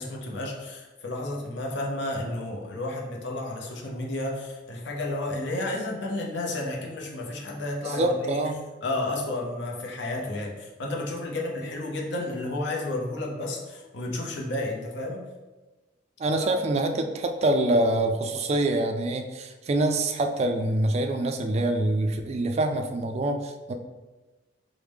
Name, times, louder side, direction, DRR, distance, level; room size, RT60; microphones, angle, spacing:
voice 1, 0.0-8.4 8.8-15.2 16.3-16.5, left 2 dB, 65° left, -1 dB, 0.7 m, -32 dB
voice 2, 7.9-8.6 16.2-23.7, right 1 dB, 35° right, 5 dB, 0.3 m, -25 dB
4.7 x 2.1 x 3.4 m, 1.2 s
head